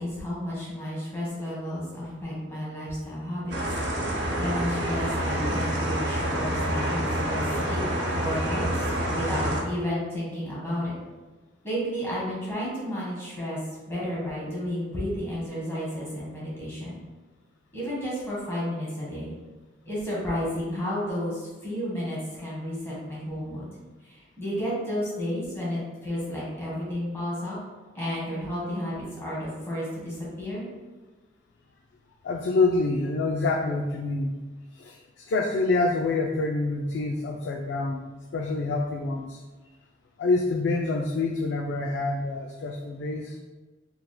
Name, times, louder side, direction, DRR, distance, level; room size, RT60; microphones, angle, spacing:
voice 1, 0.0-3.5 4.1-7.8 8.2-8.9 9.1-10.9 11.6-13.6 13.9-17.0 17.7-19.4 19.8-23.7 24.0-27.6 27.9-30.6, equal, 15° left, -7 dB, 1.4 m, -32 dB
sound 1, 3.5-9.6, right 1 dB, 75° right, 0.7 m, -27 dB
voice 2, 32.2-34.3 34.7-38.0 38.3-39.4 40.2-43.4, left 3 dB, 70° left, 2 dB, 0.3 m, -26 dB
4.6 x 3.4 x 2.2 m, 1.3 s
head